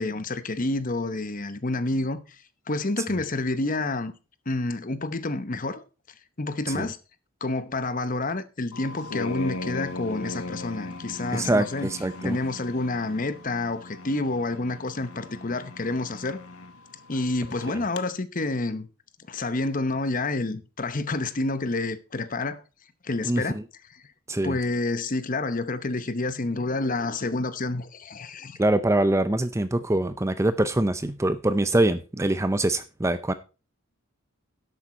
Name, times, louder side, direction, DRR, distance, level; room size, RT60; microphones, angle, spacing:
voice 1, 0.0-4.1 4.5-5.8 6.4-7.0 7.4-11.9 12.2-16.4 17.1-18.9 19.3-22.6 23.0-23.6 24.4-28.6, left 2 dB, 40° left, 0.9 m, -29 dB
sound 1, 8.7-18.0, left 2 dB, 85° left, 0.9 m, -39 dB
voice 2, 11.3-12.4 23.2-23.6 24.3-24.6 28.6-33.3, right 1 dB, 15° right, 0.5 m, -24 dB
11.0 x 8.3 x 4.3 m
head